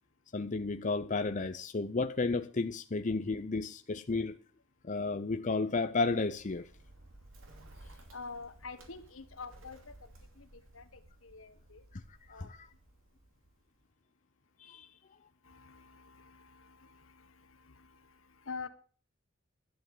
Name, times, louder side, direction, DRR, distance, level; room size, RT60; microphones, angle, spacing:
voice 1, 0.3-4.4 4.8-6.7 12.4-12.7 14.6-14.9, left 3 dB, 40° left, 0.7 m, -32 dB
Bird, 6.0-13.8, right 1 dB, 75° right, 2.8 m, -57 dB
voice 2, 8.1-11.8 12.3-12.5 15.4-18.7, left 4 dB, 85° left, 1.6 m, -48 dB
12.0 x 8.4 x 7.2 m
head